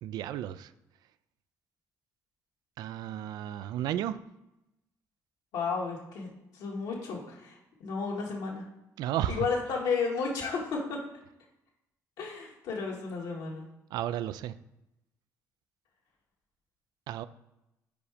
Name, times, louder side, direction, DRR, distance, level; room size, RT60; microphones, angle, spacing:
voice 1, 0.0-0.7 2.8-4.2 9.0-9.5 13.9-14.5 17.1-17.2, right 11 dB, 80° right, 14 dB, 0.3 m, -33 dB
voice 2, 5.5-6.3 6.5-8.6 9.3-11.0 12.2-13.7, left 4 dB, 85° left, -2 dB, 2.0 m, -33 dB
5.0 x 4.8 x 5.0 m, 0.91 s
cardioid pair, 95°, 7 cm